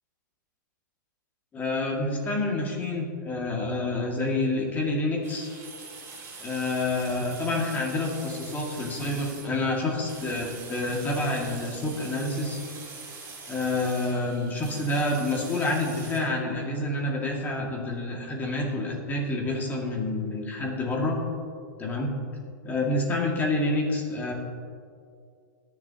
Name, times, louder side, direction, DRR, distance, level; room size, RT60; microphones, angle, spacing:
voice 1, 1.5-5.5 6.4-12.6 13.5-21.2 21.8-22.1 22.6-24.3, left 2 dB, 15° left, -1 dB, 2.2 m, -28 dB
sound 1, 5.2-16.2, right 4 dB, 25° right, 3.2 m, -43 dB
21.5 x 7.2 x 2.9 m, 2.3 s
hypercardioid pair, 135°, 10 cm